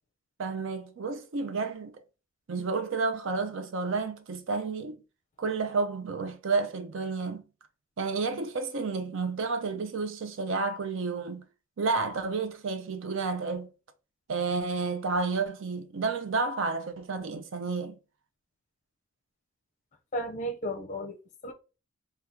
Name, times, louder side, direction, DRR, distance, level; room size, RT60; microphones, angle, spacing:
voice 1, 0.4-1.9 2.5-5.0 5.4-7.4 8.0-11.4 11.8-13.7 14.3-18.0, right 4 dB, 65° right, 0.5 m, -31 dB
voice 2, 20.1-21.5, equal, 35° left, 0.5 m, -34 dB
3.5 x 2.3 x 2.8 m
head